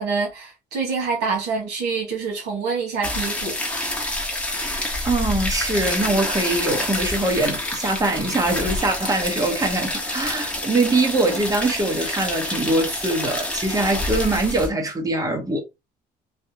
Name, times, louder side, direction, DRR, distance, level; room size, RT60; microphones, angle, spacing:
voice 1, 0.0-3.6, right 5 dB, 85° right, 1.7 m, -26 dB
sound 1, 3.0-14.7, left 1 dB, 5° left, 1.0 m, -27 dB
voice 2, 4.7-15.6, right 2 dB, 20° right, 1.1 m, -23 dB
3.3 x 2.3 x 2.9 m
cardioid pair, 110°, 17 cm